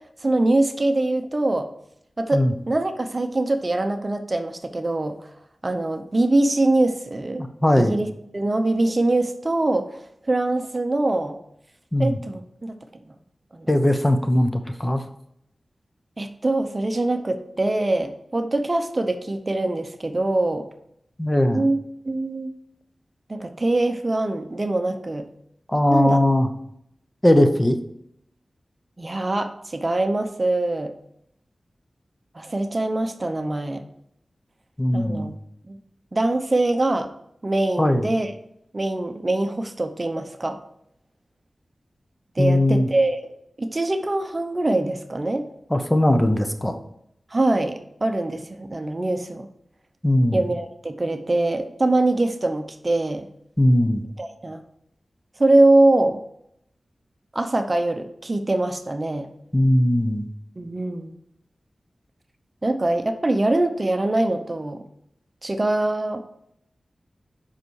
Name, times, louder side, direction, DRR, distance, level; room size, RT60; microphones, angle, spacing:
voice 1, 0.2-1.7 2.2-5.2 5.6-7.4 7.7-8.1 8.3-10.0 10.3-11.4 12.0-12.8 13.5-13.7 16.2-20.7 21.5-21.8 22.0-22.5 23.3-25.3 25.9-26.2 29.0-30.9 32.3-33.8 34.9-35.3 35.7-35.8 36.1-37.1 37.4-38.3 38.7-40.6 42.4-43.3 43.6-45.5 47.3-49.5 50.3-53.3 54.2-54.6 55.4-56.2 57.3-59.3 60.6-61.1 62.6-64.8 65.4-66.2, right 2 dB, 35° right, 7 dB, 0.8 m, -23 dB
voice 2, 7.4-8.0 11.9-12.2 13.7-15.0 21.2-21.7 25.7-26.5 27.2-27.8 34.8-35.3 37.8-38.1 42.4-42.9 45.7-46.8 50.0-50.4 53.6-54.0 59.5-60.3, left 1 dB, 15° left, 7 dB, 0.9 m, -19 dB
8.1 x 5.7 x 4.7 m, 0.75 s
wide cardioid pair, 60°, 0 cm